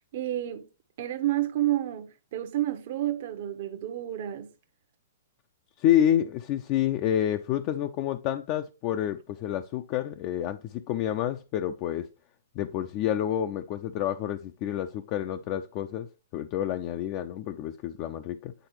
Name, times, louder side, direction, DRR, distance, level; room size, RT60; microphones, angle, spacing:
voice 1, 0.1-0.7 1.0-4.5, right 13 dB, 55° right, 0.9 m, -30 dB
voice 2, 5.8-12.1 12.6-18.5, left 11 dB, 40° left, 0.5 m, -28 dB
9.0 x 3.8 x 3.0 m
hypercardioid pair, 140°, 0 cm